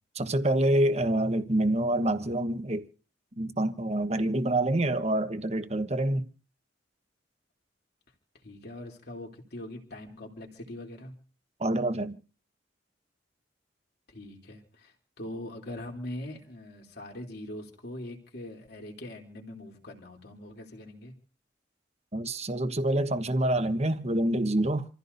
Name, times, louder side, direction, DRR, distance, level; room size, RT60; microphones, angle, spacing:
voice 1, 0.1-2.8 3.4-6.3 11.6-12.2 22.1-24.8, right 1 dB, 35° right, 1.2 m, -26 dB
voice 2, 8.4-11.1 14.1-21.1, left 1 dB, 60° left, 3.3 m, -42 dB
28.0 x 15.0 x 2.7 m
head